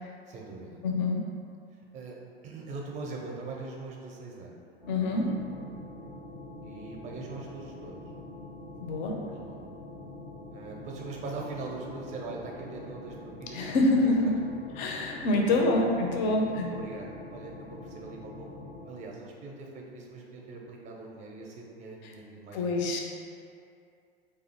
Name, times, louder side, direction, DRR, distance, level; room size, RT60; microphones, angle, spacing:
voice 1, 0.3-0.8 1.9-2.2 2.4-4.6 6.6-7.9 9.3-9.6 10.5-13.7 14.0-14.3 15.3-15.8 16.4-18.5 18.8-22.8, right 3 dB, 25° right, -1 dB, 0.5 m, -41 dB
voice 2, 0.8-1.2 4.9-5.4 8.8-9.2 13.5-14.4 14.7-16.7 22.0-22.1 22.5-23.0, left 2 dB, 45° left, 1 dB, 0.5 m, -26 dB
sound 1, 4.8-18.9, left 2 dB, 85° left, 1.0 m, -45 dB
2.5 x 2.4 x 4.1 m, 2.4 s
figure-of-eight pair, 90°, 31 cm